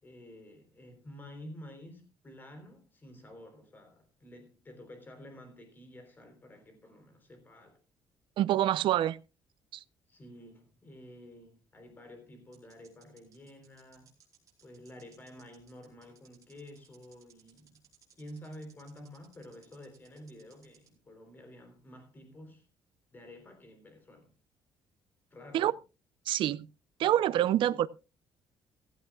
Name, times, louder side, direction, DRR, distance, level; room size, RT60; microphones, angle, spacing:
voice 1, 0.0-7.8 10.1-14.1 14.6-17.8 18.2-22.7 23.1-24.3 25.3-25.8, left 1 dB, 20° left, 3.6 m, -50 dB
sound 1, 8.3-9.6 9.8-9.9 11.8-11.9 12.5-20.9, right 8 dB, 40° right, 4.5 m, -63 dB
voice 2, 8.4-9.2 9.7-9.8 25.5-25.7 26.3-26.6 27.0-27.9, right 12 dB, 65° right, 0.6 m, -26 dB
15.5 x 15.5 x 2.4 m
cardioid pair, 165°, 9 cm